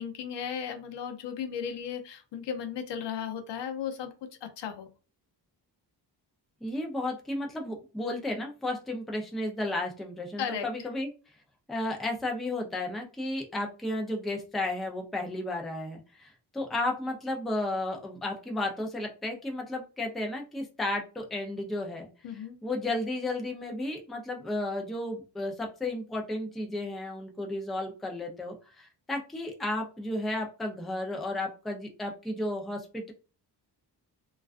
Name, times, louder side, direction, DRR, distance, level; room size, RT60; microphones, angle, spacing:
voice 1, 0.0-4.9 10.4-10.7 22.2-22.6, left 8 dB, 75° left, 6 dB, 0.6 m, -35 dB
voice 2, 6.6-11.1 11.7-22.1 22.6-33.1, left 1 dB, ahead, 1 dB, 0.4 m, -33 dB
2.3 x 2.2 x 2.4 m, 0.34 s
wide cardioid pair, 120°, 43 cm